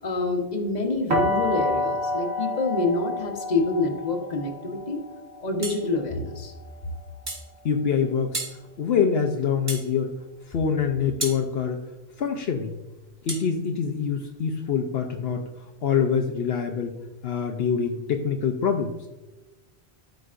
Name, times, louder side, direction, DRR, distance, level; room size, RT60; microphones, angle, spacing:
voice 1, 0.0-5.0 5.4-6.5, left 2 dB, 40° left, 3 dB, 1.2 m, -27 dB
sound 1, 1.1-6.9, left 2 dB, 80° right, 1.8 m, -29 dB
sound 2, 5.6-5.9 7.3-7.5 8.3-8.6 9.7-9.9 11.2-11.4 13.3-13.5, right 2 dB, 50° right, 1.7 m, -32 dB
voice 2, 7.6-8.4 8.8-10.1 10.5-11.8 12.2-12.8 13.2-15.5 15.8-16.9 17.2-19.1, left 6 dB, 70° left, 3 dB, 0.9 m, -25 dB
12.5 x 5.3 x 2.5 m, 1.1 s
omnidirectional pair, 1.1 m